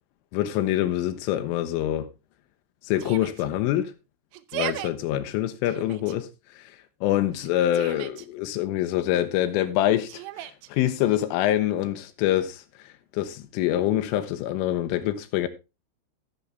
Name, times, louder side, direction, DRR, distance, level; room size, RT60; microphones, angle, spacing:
voice 1, 0.3-2.1 2.9-3.9 4.5-6.3 6.6-6.7 7.0-12.6 13.1-15.5, left 13 dB, 90° left, 3.4 m, -25 dB
Yell, 3.0-3.5 4.3-4.9 5.6-6.2 7.3-8.3 10.1-10.7, right 14 dB, 90° right, 2.4 m, -36 dB
16.0 x 6.8 x 3.3 m
omnidirectional pair, 5.7 m